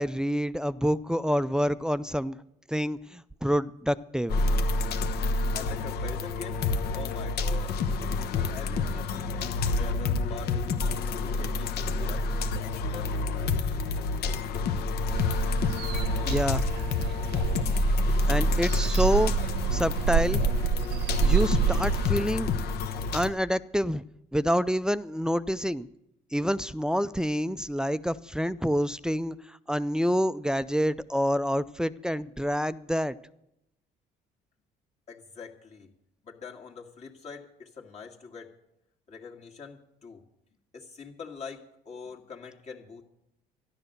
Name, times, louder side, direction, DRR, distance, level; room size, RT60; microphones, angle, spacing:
voice 1, 0.0-2.4 2.7-4.4 16.2-16.6 18.3-19.3 19.7-20.4 21.2-22.5 23.1-24.0 24.3-25.9 26.3-33.2, equal, 5° right, 14 dB, 0.4 m, -27 dB
sound 1, 4.3-23.3, left 3 dB, 70° left, 1.1 m, -28 dB
voice 2, 5.5-6.6 6.9-7.8 8.1-10.7 11.2-13.6 35.1-35.9 36.2-38.5 39.1-40.2 40.7-43.0, left 5 dB, 40° left, -1 dB, 1.9 m, -44 dB
sound 2, 15.1-22.1, right 9 dB, 75° right, 0.9 m, -29 dB
13.0 x 11.0 x 6.6 m, 0.82 s
cardioid pair, 110°, 17 cm